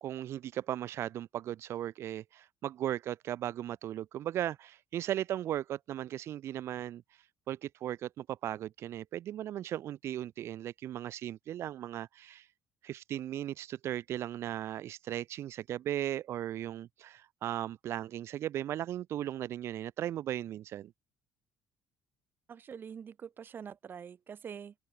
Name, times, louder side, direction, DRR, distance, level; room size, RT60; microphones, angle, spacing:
voice 1, 0.0-7.0 7.5-12.4 12.8-20.9, right 12 dB, 60° right, 1.1 m, -37 dB
voice 2, 22.5-24.7, right 7 dB, 45° right, 2.1 m, -45 dB
supercardioid pair, 80°, 5 cm